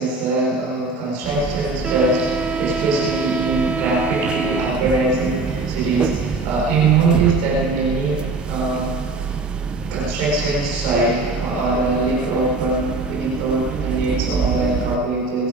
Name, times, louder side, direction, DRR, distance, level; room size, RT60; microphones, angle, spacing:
voice 1, 0.0-9.3 9.9-15.5, right 3 dB, 50° right, -4 dB, 4.1 m, -22 dB
sound 1, 1.2-15.0, right 6 dB, 15° right, 0.5 m, -26 dB
21.5 x 10.5 x 5.0 m, 2.5 s
supercardioid pair, 170°, 6 cm